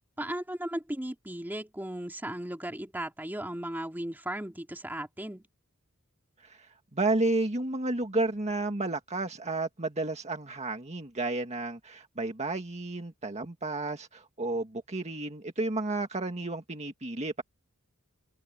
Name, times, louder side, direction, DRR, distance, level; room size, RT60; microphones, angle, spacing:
voice 1, 0.2-5.4, right 1 dB, 10° right, 2.4 m, -36 dB
voice 2, 6.4-17.4, right 2 dB, 30° right, 1.9 m, -32 dB
head